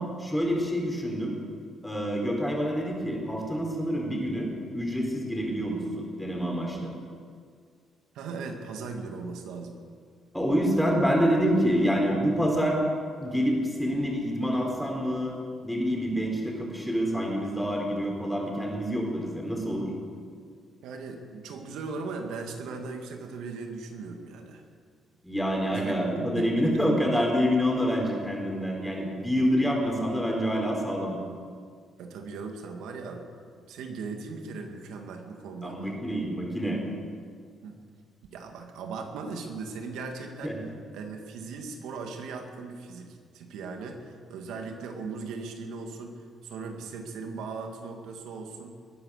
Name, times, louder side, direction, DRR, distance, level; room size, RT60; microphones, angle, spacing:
voice 1, 0.0-1.4 1.8-6.9 10.3-12.8 13.2-19.9 25.2-31.2 35.6-36.8 40.4-40.5, equal, 5° left, -1 dB, 4.5 m, -27 dB
voice 2, 8.1-9.8 20.8-24.6 25.7-26.8 29.2-29.3 32.0-33.3 33.6-35.9 37.6-37.8 38.3-40.6 40.9-48.8, right 4 dB, 85° right, 4 dB, 2.1 m, -38 dB
21.0 x 9.6 x 6.7 m, 2.1 s
cardioid pair, 90°, 0 cm